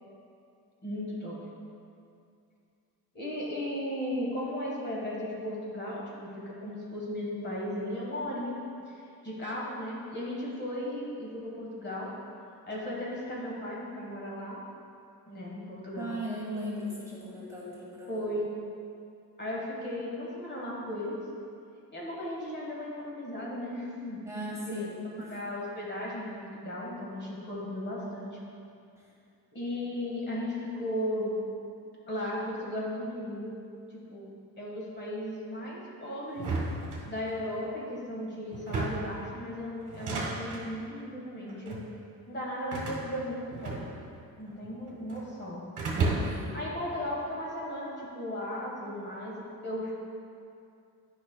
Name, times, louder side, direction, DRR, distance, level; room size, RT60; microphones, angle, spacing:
voice 1, 0.8-1.4 3.1-12.1 12.7-14.6 15.3-16.2 18.1-18.5 19.4-21.2 21.9-24.2 24.7-24.8 25.3-28.4 29.5-31.3 32.1-33.6 33.9-34.3 34.6-36.5 37.0-41.8 42.3-44.0 44.4-45.6 46.5-49.9, left 1 dB, 30° left, -4 dB, 1.4 m, -36 dB
voice 2, 16.0-18.3 24.2-25.3 46.2-46.7, equal, 10° right, -7 dB, 1.2 m, -38 dB
sound 1, 36.4-37.5 38.5-39.2 39.9-40.7 41.5-41.9 42.7-44.2 44.5-45.3 45.8-46.5, right 3 dB, 55° right, 1.4 m, -33 dB
9.6 x 5.5 x 2.2 m, 2.5 s
cardioid pair, 120°, 37 cm